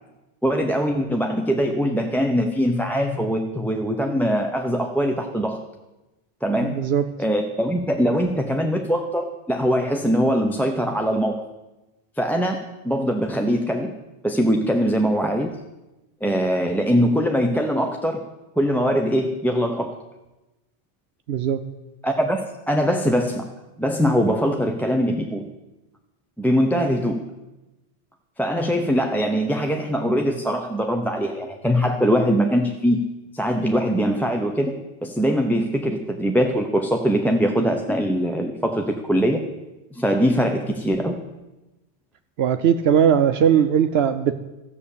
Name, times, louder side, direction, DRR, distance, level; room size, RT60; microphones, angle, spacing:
voice 1, 0.4-5.6 6.4-6.8 7.2-11.4 12.2-13.9 14.2-15.6 16.2-18.2 18.6-20.0 22.0-22.4 22.7-23.5 23.8-25.5 26.4-27.2 28.4-33.0 33.3-34.7 35.0-39.4 39.9-41.2, equal, ahead, 3 dB, 0.7 m, -22 dB
voice 2, 6.6-7.0 21.3-21.6 42.4-44.3, right 8 dB, 70° right, 9 dB, 0.8 m, -19 dB
13.5 x 7.2 x 8.5 m, 1.0 s
omnidirectional pair, 1.1 m